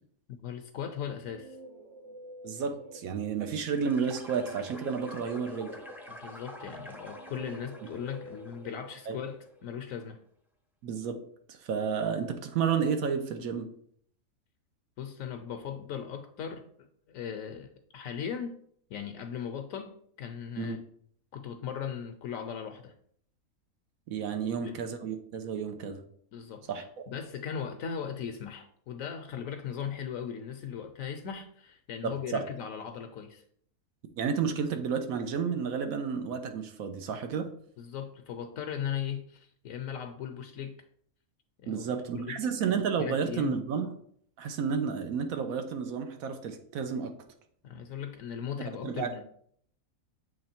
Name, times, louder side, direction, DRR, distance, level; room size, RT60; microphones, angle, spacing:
voice 1, 0.3-1.6 6.1-10.2 15.0-18.6 18.9-20.8 21.3-22.9 24.6-24.8 26.3-33.4 37.8-40.8 41.6-41.9 42.1-42.4 43.0-43.5 47.6-49.2, left 8 dB, 75° left, 6 dB, 1.0 m, -38 dB
Guitar, 0.9-3.4 4.2-9.6, equal, 60° right, 1.1 m, -50 dB
voice 2, 2.4-5.8 9.1-9.2 10.8-11.2 11.5-13.7 20.6-20.8 24.1-26.0 26.7-26.8 32.0-32.4 34.2-37.5 41.7-43.9 44.4-47.1 48.8-49.2, right 6 dB, 85° right, 6 dB, 1.2 m, -31 dB
sound 1, 3.6-9.3, equal, 5° right, 0.4 m, -47 dB
7.2 x 3.2 x 4.3 m, 0.64 s
omnidirectional pair, 1.5 m